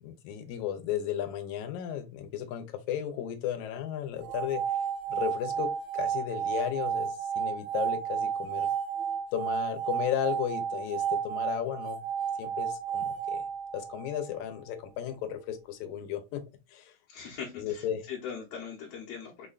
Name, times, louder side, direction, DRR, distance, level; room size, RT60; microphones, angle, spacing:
voice 1, 0.0-4.6 5.1-8.7 9.3-12.0 12.4-13.4 13.7-16.4 16.7-16.9 17.6-18.0, left 10 dB, 85° left, 2.0 m, -34 dB
sound 1, 4.2-14.3, right 8 dB, 70° right, 1.7 m, -32 dB
voice 2, 17.1-19.5, left 7 dB, 70° left, 1.8 m, -41 dB
5.7 x 2.2 x 2.3 m
omnidirectional pair, 3.3 m